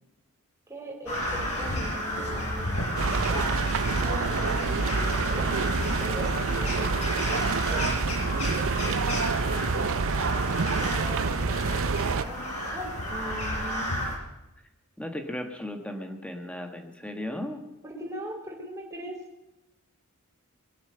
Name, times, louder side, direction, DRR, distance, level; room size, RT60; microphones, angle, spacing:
voice 1, 0.7-2.8 3.1-3.7 4.0-5.5 6.0-9.9 10.8-12.4 12.7-13.9 17.8-19.2, right 1 dB, 15° right, -2 dB, 4.5 m, -40 dB
Crow, 1.1-14.2, equal, 85° left, 5.3 m, -32 dB
sound 1, 3.0-12.2, right 4 dB, 65° right, 0.6 m, -27 dB
voice 2, 15.0-17.6, left 1 dB, 5° left, 5 dB, 1.7 m, -36 dB
23.5 x 7.9 x 6.9 m, 0.96 s
head